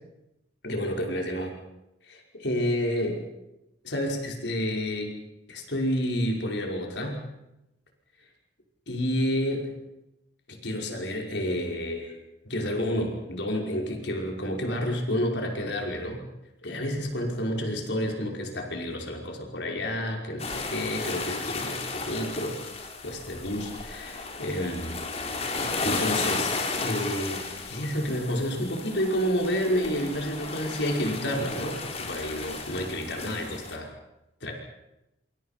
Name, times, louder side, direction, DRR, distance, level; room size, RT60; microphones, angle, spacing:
voice 1, 0.6-1.5 2.1-3.2 3.8-5.1 5.5-7.2 8.9-9.7 10.5-12.2 12.4-16.2 16.6-22.6 23.0-25.0 25.8-33.9 34.4-34.5, equal, 70° left, 1 dB, 5.5 m, -30 dB
sound 1, 20.4-33.8, left 3 dB, 35° left, 4.0 m, -34 dB
27.5 x 26.0 x 5.9 m, 0.90 s
head